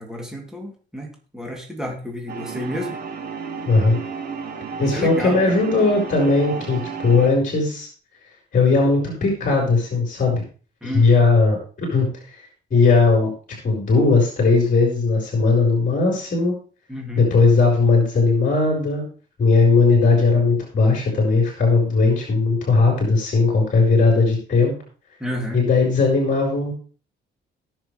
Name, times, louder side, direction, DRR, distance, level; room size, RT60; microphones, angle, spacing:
voice 1, 0.0-2.9 4.8-5.6 10.8-11.2 16.9-17.2 25.2-25.6, equal, 5° right, 1 dB, 2.9 m, -30 dB
sound 1, 2.3-7.3, right 5 dB, 55° right, 5.0 m, -32 dB
voice 2, 3.7-4.0 4.8-7.9 8.5-10.4 10.8-12.1 12.7-13.3 13.6-16.5 17.1-19.0 19.4-24.7 25.5-26.7, left 3 dB, 40° left, 0 dB, 4.9 m, -18 dB
19.0 x 6.7 x 3.3 m, 0.38 s
cardioid pair, 90°, 20 cm